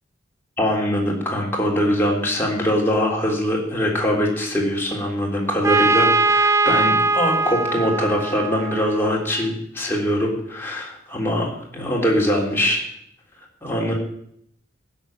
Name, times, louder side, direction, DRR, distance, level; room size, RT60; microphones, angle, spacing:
voice 1, 0.6-12.9 13.6-13.9, equal, 10° left, -2 dB, 3.6 m, -22 dB
Trumpet, 5.6-9.4, right 3 dB, 15° right, 0.4 m, -20 dB
16.0 x 7.1 x 9.1 m, 0.71 s
head